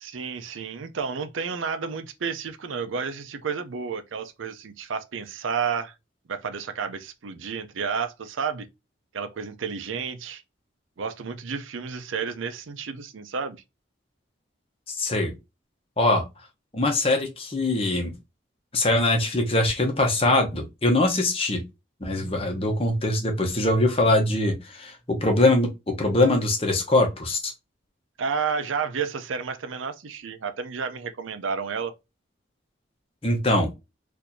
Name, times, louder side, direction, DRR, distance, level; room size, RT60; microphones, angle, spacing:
voice 1, 0.0-5.9 6.3-8.7 9.1-10.4 11.0-13.6 28.2-31.9, right 6 dB, 90° right, 0.5 m, -31 dB
voice 2, 14.9-15.3 16.0-16.2 16.7-18.1 18.7-21.6 22.0-27.5 33.2-33.7, left 2 dB, 30° left, 0.8 m, -22 dB
4.4 x 2.6 x 2.6 m
head